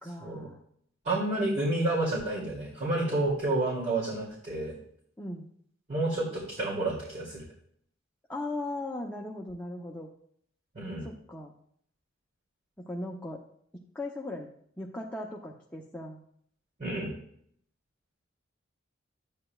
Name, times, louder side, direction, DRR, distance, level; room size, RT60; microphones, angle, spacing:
voice 1, 0.0-0.6 5.2-5.5 8.3-10.1 11.0-11.5 12.8-13.4 13.9-14.5 14.8-16.2, left 2 dB, 10° left, -2 dB, 0.7 m, -38 dB
voice 2, 1.0-4.7 5.9-7.4 10.7-11.1 16.8-17.2, right 2 dB, 40° right, -7 dB, 2.6 m, -30 dB
12.0 x 8.7 x 2.4 m, 0.66 s
head